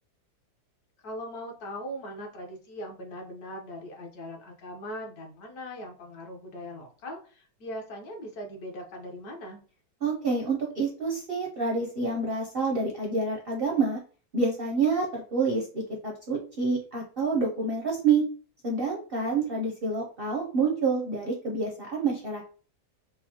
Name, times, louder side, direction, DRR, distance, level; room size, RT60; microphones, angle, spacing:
voice 1, 1.0-9.6, equal, 70° left, 1 dB, 1.4 m, -40 dB
voice 2, 10.0-14.0 14.3-18.3 18.6-22.5, right 4 dB, 60° right, -1 dB, 0.5 m, -28 dB
5.1 x 2.0 x 2.8 m, 0.39 s
omnidirectional pair, 1.8 m